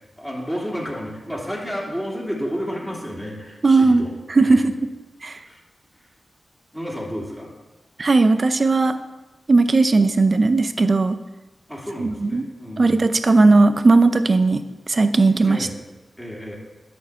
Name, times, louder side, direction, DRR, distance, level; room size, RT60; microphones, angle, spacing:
voice 1, 0.2-4.1 4.4-4.6 5.4-5.6 6.7-7.5 11.7-13.1 15.4-15.7 16.2-16.6, equal, ahead, -4 dB, 2.8 m, -31 dB
voice 2, 3.6-4.0 4.3-4.8 5.2-5.4 8.0-9.0 9.5-11.2 12.0-12.4 12.8-15.7, right 3 dB, 45° right, 10 dB, 0.7 m, -17 dB
11.0 x 4.5 x 7.1 m, 1.1 s
cardioid pair, 75°, 0 cm